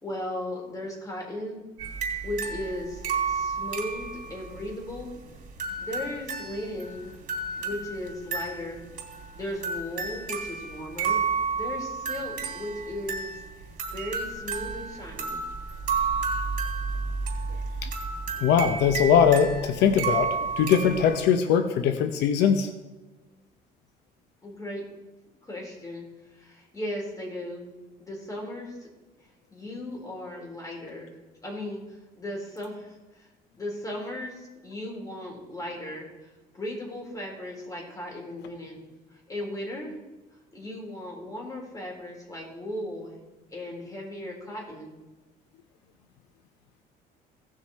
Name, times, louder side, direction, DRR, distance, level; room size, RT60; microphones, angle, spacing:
voice 1, 0.0-1.6 2.2-5.1 5.8-7.1 7.5-8.8 9.3-11.2 11.5-13.4 13.9-15.4 24.4-24.8 25.4-27.7 28.0-28.9 29.5-31.2 31.4-31.8 32.2-33.3 33.6-36.1 36.5-38.8 39.1-40.0 40.3-43.1 43.5-45.0, left 1 dB, 20° left, -1 dB, 3.8 m, -36 dB
sound 1, 1.8-21.3, right 5 dB, 55° right, 2.8 m, -32 dB
voice 2, 18.4-22.7, left 7 dB, 85° left, 8 dB, 0.8 m, -21 dB
17.0 x 6.3 x 4.3 m, 1.2 s
cardioid pair, 110°, 17 cm